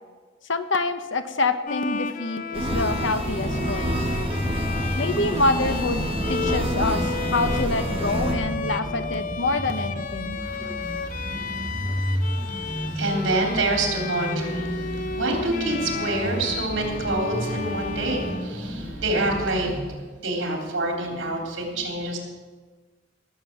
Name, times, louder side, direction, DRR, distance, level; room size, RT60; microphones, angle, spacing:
voice 1, 0.5-4.0 5.0-10.4, left 2 dB, 80° left, 9 dB, 1.1 m, -26 dB
Bowed string instrument, 1.7-19.1, left 5 dB, 45° left, 0.6 m, -33 dB
sound 1, 2.5-8.3, right 1 dB, 30° right, 1.7 m, -28 dB
sound 2, 3.0-19.9, equal, 10° right, 1.1 m, -33 dB
voice 2, 10.4-12.0 12.2-14.8 15.1-20.0 20.2-22.2, right 2 dB, 80° right, 1 dB, 3.7 m, -27 dB
18.5 x 7.6 x 7.5 m, 1.4 s
head